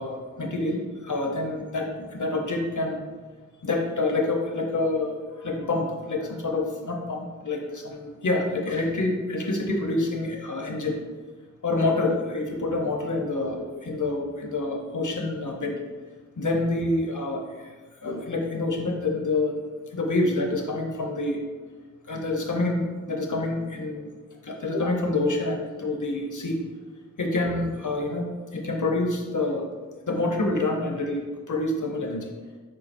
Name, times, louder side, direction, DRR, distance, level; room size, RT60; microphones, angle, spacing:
voice 1, 0.0-3.0 3.6-11.0 11.6-15.8 16.4-17.7 18.0-19.6 19.9-21.4 22.1-24.1 24.4-26.6 27.2-29.7 30.1-32.3, left 2 dB, 90° left, 1 dB, 0.7 m, -27 dB
4.5 x 4.5 x 2.5 m, 1.4 s
wide cardioid pair, 40°, 30 cm